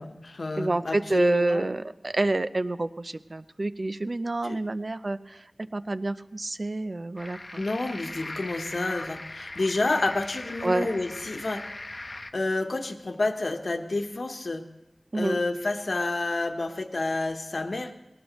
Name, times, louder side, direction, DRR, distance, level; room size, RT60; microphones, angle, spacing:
voice 1, 0.0-1.7 4.4-4.6 7.5-11.6 12.3-14.6 15.1-17.9, left 2 dB, 75° left, 6 dB, 1.1 m, -29 dB
voice 2, 0.6-7.6 8.8-8.9 10.6-10.9 15.1-15.4, right 2 dB, 50° right, 12 dB, 0.5 m, -28 dB
sound 1, 7.2-12.3, left 2 dB, 45° left, 0.8 m, -40 dB
20.0 x 18.5 x 3.1 m, 0.96 s
wide cardioid pair, 60°, 0 cm